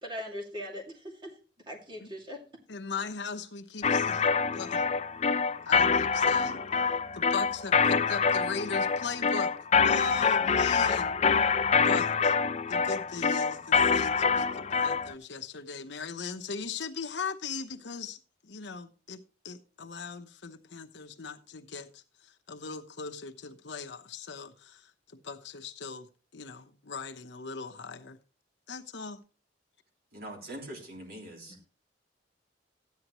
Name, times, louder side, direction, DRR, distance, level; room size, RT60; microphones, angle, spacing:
voice 1, 0.0-1.3 1.7-2.6, equal, 25° right, 0 dB, 2.3 m, -40 dB
voice 2, 2.7-4.8 5.6-6.6 7.1-9.5 9.8-11.2 11.7-12.3 12.7-26.1 26.3-28.2 28.7-29.2, left 5 dB, 70° left, 6 dB, 1.0 m, -38 dB
sound 1, 3.8-15.1, left 5 dB, 35° left, 0.5 m, -26 dB
voice 3, 30.1-31.5, right 1 dB, 55° right, 0 dB, 3.3 m, -43 dB
13.5 x 9.5 x 3.0 m, 0.36 s
head